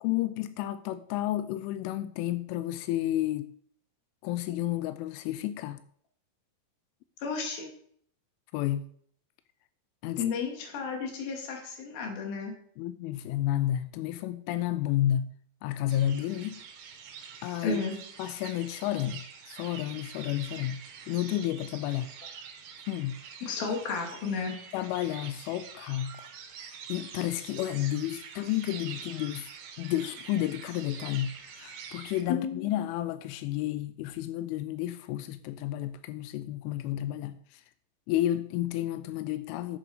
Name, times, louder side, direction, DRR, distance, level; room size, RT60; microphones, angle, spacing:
voice 1, 0.0-3.5 4.2-5.8 8.5-8.8 10.0-10.2 12.8-15.3 15.6-16.6 17.4-17.8 18.2-22.1 22.9-23.2 24.7-26.3 26.6-29.5 29.8-37.6 38.1-39.8, left 13 dB, 90° left, 3.1 m, -31 dB
voice 2, 7.2-7.7 10.2-12.5 17.6-18.0 23.4-24.6 32.3-32.7, left 5 dB, 55° left, 3.8 m, -32 dB
sound 1, 15.9-32.2, right 7 dB, 75° right, 3.7 m, -46 dB
11.0 x 8.8 x 5.0 m
omnidirectional pair, 5.4 m